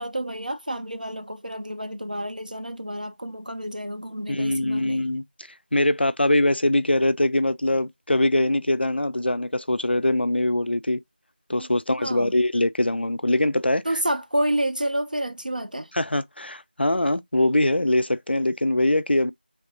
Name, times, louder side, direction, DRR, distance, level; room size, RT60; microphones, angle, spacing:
voice 1, 0.0-5.1 11.6-11.7 12.0-12.3 13.8-15.9, right 1 dB, 55° right, 0.5 m, -29 dB
voice 2, 4.3-5.2 5.7-11.0 11.5-14.0 15.9-19.3, left 1 dB, 90° left, 0.4 m, -22 dB
3.4 x 2.9 x 2.5 m
figure-of-eight pair, 175°, 6 cm